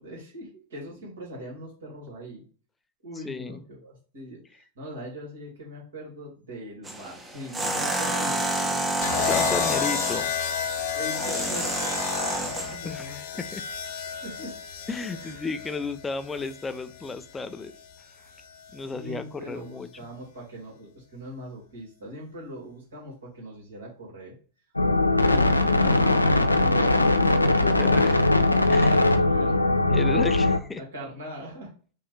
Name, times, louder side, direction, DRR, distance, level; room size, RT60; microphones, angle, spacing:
voice 1, 0.0-2.4 3.0-8.9 10.9-13.2 14.2-14.5 15.1-15.4 18.8-24.3 25.3-27.8 28.7-29.6 30.8-31.7, equal, 65° right, -3 dB, 2.4 m, -41 dB
voice 2, 3.2-3.6 9.2-10.3 12.8-13.2 13.5-13.6 14.9-17.7 18.7-19.9 27.5-28.2 28.7-28.9 29.9-30.8, left 4 dB, 15° left, 10 dB, 0.4 m, -33 dB
sound 1, 6.8-12.8, right 2 dB, 15° right, 0.9 m, -29 dB
sound 2, 9.0-17.1 18.4-18.7, left 8 dB, 50° left, 0.7 m, -31 dB
sound 3, 24.8-30.6, left 2 dB, 85° left, 0.4 m, -20 dB
5.6 x 2.7 x 3.2 m, 0.41 s
figure-of-eight pair, 90°, 0 cm